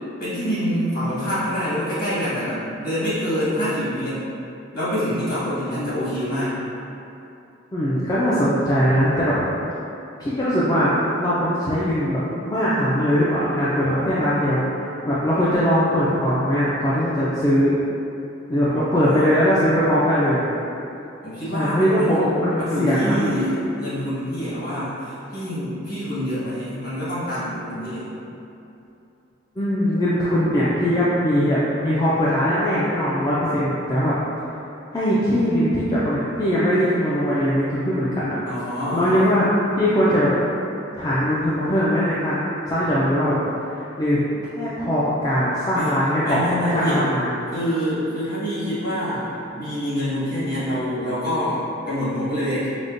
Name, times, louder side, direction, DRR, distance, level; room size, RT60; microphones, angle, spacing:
voice 1, 0.2-4.2 4.7-6.6 18.7-19.3 21.2-22.3 22.6-28.1 38.5-39.2 45.7-45.9 46.2-47.1 47.5-52.7, equal, 50° left, -11 dB, 1.5 m, -26 dB
voice 2, 7.7-9.4 10.2-12.2 12.4-17.8 18.5-20.4 21.5-23.2 29.6-34.1 34.9-38.4 38.9-39.5 39.7-40.3 40.9-42.4 42.7-43.4 43.7-44.2 44.5-47.3, equal, 20° left, -10 dB, 0.3 m, -21 dB
5.0 x 2.1 x 2.5 m, 2.8 s
head